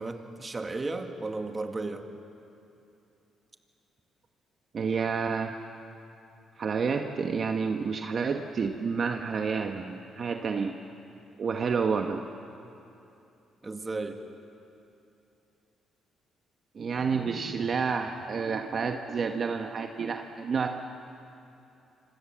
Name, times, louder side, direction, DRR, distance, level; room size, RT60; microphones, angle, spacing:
voice 1, 0.0-2.1 13.6-14.2, right 3 dB, 25° right, 5 dB, 2.1 m, -34 dB
voice 2, 4.7-5.5 6.6-10.7 11.4-12.3 16.7-20.8, right 5 dB, 50° right, 4 dB, 1.2 m, -29 dB
27.0 x 25.5 x 7.5 m, 2.8 s
cardioid pair, 90°, 0 cm